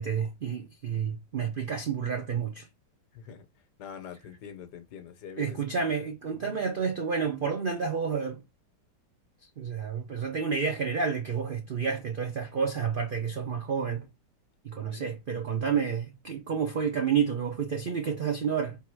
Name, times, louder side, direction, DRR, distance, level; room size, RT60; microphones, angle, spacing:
voice 1, 0.0-2.7 5.4-8.4 9.6-14.1 14.6-18.8, right 6 dB, 70° right, 0.5 m, -30 dB
voice 2, 3.1-3.5 3.8-5.6 6.4-6.6 14.9-15.2, left 7 dB, 70° left, 1.3 m, -45 dB
3.7 x 2.8 x 4.4 m
omnidirectional pair, 1.8 m